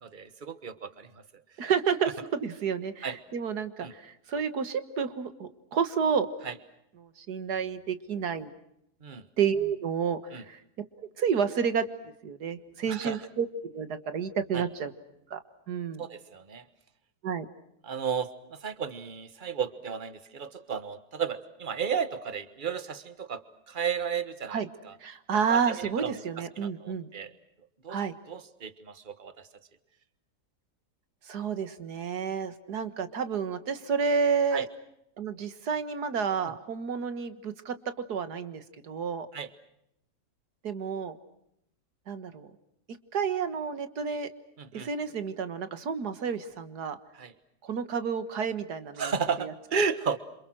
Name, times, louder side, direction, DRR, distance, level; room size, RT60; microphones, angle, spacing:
voice 1, 0.0-1.7 3.0-3.2 3.8-3.9 6.4-6.5 9.0-9.3 10.3-10.4 12.9-13.2 14.5-14.7 16.0-16.7 17.8-25.0 25.5-27.3 27.8-28.0 28.3-29.5 34.5-34.7 39.3-39.5 44.6-44.9 47.1-47.3 49.0-50.2, right 6 dB, 35° right, 13 dB, 1.4 m, -34 dB
voice 2, 1.6-6.3 7.0-8.5 9.4-10.6 11.0-11.9 12.2-13.5 13.7-14.9 15.3-15.4 15.7-16.0 17.2-17.5 24.5-24.7 25.0-27.1 27.9-28.1 31.3-34.7 35.2-37.7 38.1-39.3 40.6-41.2 42.1-42.5 43.1-44.3 44.7-47.0 47.6-49.1 49.4-49.5, right 6 dB, 85° right, 11 dB, 2.1 m, -30 dB
28.0 x 27.0 x 6.2 m, 0.77 s
omnidirectional pair, 1.6 m